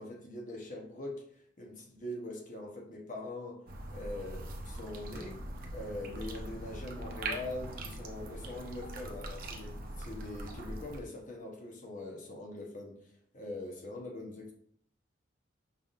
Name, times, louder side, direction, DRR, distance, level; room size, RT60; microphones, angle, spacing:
voice 1, 0.0-3.6 3.9-5.4 5.7-12.9 13.3-14.5, left 2 dB, 45° left, 0 dB, 1.0 m, -42 dB
sound 1, 3.7-11.0, right 1 dB, 50° right, 0.6 m, -42 dB
5.6 x 3.5 x 2.5 m, 0.65 s
head